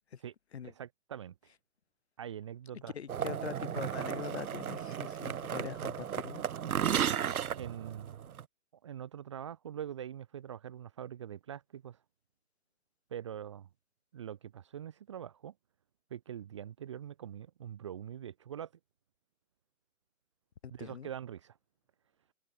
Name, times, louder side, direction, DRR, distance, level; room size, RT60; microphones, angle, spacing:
voice 1, 0.6-1.5 2.2-2.9 6.9-8.3 8.8-12.0 13.1-13.7 14.1-15.5 16.1-18.7 20.7-21.6, right 9 dB, 20° right, 1.2 m, -44 dB
voice 2, 2.9-6.4 20.8-21.1, left 8 dB, 50° left, 3.8 m, -42 dB
sound 1, 3.1-8.4, right 9 dB, 85° right, 1.0 m, -34 dB
hypercardioid pair, 175°, 42 cm